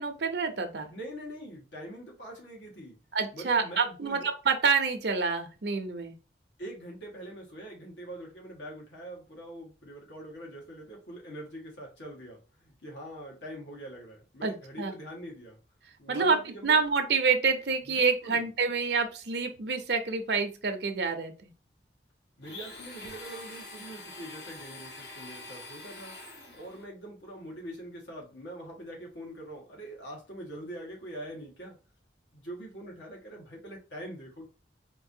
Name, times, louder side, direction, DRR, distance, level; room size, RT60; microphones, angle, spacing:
voice 1, 0.0-0.9 3.1-6.1 14.4-14.9 16.1-16.4 16.6-21.5, right 5 dB, 70° right, 6 dB, 0.6 m, -27 dB
voice 2, 0.9-3.0 3.3-4.3 6.6-15.6 16.0-16.8 17.9-18.5 22.4-26.1 26.5-31.8 32.3-34.5, right 1 dB, 90° left, -1 dB, 1.5 m, -43 dB
Domestic sounds home sounds, 22.4-26.9, left 2 dB, 70° left, 1.0 m, -45 dB
4.6 x 2.6 x 2.7 m, 0.33 s
head